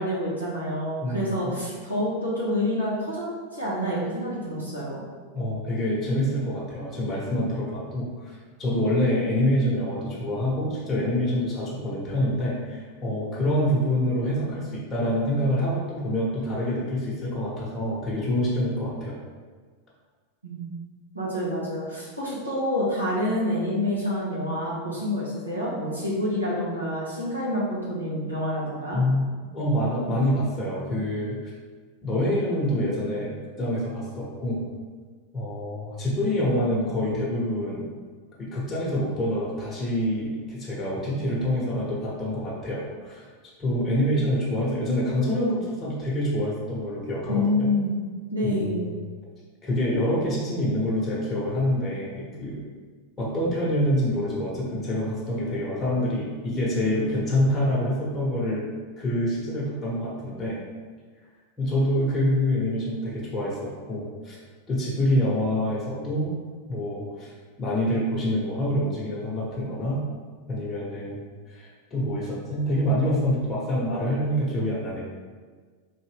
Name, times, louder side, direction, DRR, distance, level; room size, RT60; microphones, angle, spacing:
voice 1, 0.0-3.3 3.5-5.0 20.4-20.7 21.1-29.0 47.3-48.0 48.3-48.8, left 1 dB, 90° right, -7 dB, 1.2 m, -27 dB
voice 2, 1.0-1.6 5.3-19.2 28.9-29.3 29.5-31.5 32.0-34.6 35.3-37.8 38.4-43.3 43.6-47.7 48.4-48.9 49.6-52.6 53.2-58.7 59.0-60.6 61.6-64.4 64.7-66.3 66.7-67.3 67.6-70.0 70.5-71.2 71.5-75.0, left 1 dB, 20° left, -7 dB, 1.0 m, -26 dB
3.8 x 2.5 x 3.4 m, 1.5 s
figure-of-eight pair, 90°, 0 cm